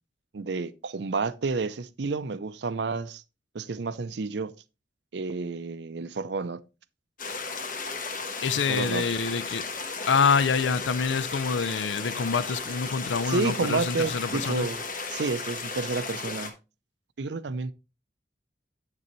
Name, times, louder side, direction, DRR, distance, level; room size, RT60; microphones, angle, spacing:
voice 1, 0.3-3.2 3.5-4.5 5.1-6.6 8.7-9.0 13.3-14.8 15.1-16.5 17.2-17.7, right 4 dB, 65° right, 0.5 m, -30 dB
sound 1, 7.2-16.5, left 4 dB, 45° left, 1.2 m, -35 dB
voice 2, 8.4-9.6 10.1-14.7, left 5 dB, 75° left, 0.5 m, -26 dB
8.6 x 6.7 x 3.1 m
head